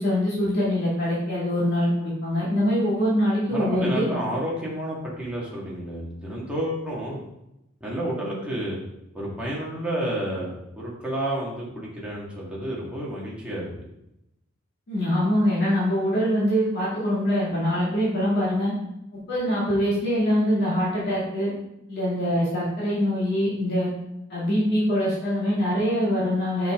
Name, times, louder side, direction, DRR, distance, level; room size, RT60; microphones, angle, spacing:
voice 1, 0.0-4.1 14.9-18.7 19.1-21.5 21.9-23.9 24.3-26.7, equal, 55° left, -7 dB, 2.2 m, -23 dB
voice 2, 3.5-7.2 7.8-8.8 9.1-13.6, right 1 dB, 5° right, -6 dB, 1.9 m, -30 dB
5.7 x 5.7 x 3.7 m, 0.86 s
head